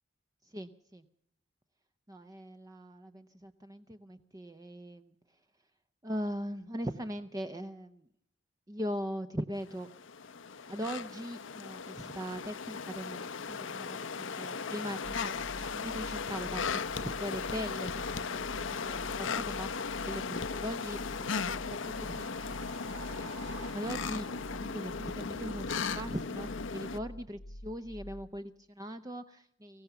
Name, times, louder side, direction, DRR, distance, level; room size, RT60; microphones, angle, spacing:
voice 1, 0.4-1.0 2.1-5.1 6.0-8.1 8.7-9.9 10.6-29.8, equal, 15° right, 8 dB, 0.7 m, -41 dB
sound 1, 9.7-27.0, left 5 dB, 65° left, 0.8 m, -37 dB
sound 2, 15.0-28.4, equal, 90° left, 1.4 m, -48 dB
sound 3, 21.0-24.2, right 3 dB, 55° right, 3.5 m, -50 dB
24.5 x 15.5 x 6.8 m, 0.74 s
head